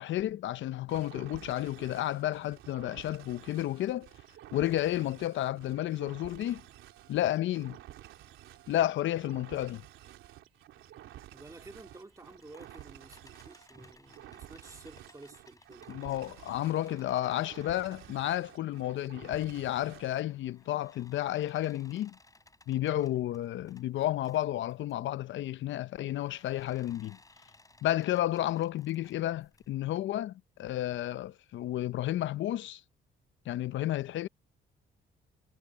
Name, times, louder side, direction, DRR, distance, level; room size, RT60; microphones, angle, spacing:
voice 1, 0.0-4.1 4.5-6.6 7.1-7.8 8.7-9.8 15.9-22.1 22.7-27.2 27.8-32.8 33.5-34.3, left 13 dB, 70° left, 0.6 m, -31 dB
sound 1, 0.9-20.3, right 13 dB, 90° right, 3.4 m, -51 dB
voice 2, 11.3-15.9, right 2 dB, 15° right, 2.3 m, -52 dB
sound 2, 11.9-19.1 19.6-24.9 26.1-29.7, left 2 dB, 15° left, 6.2 m, -62 dB
cardioid pair, 90°, 20 cm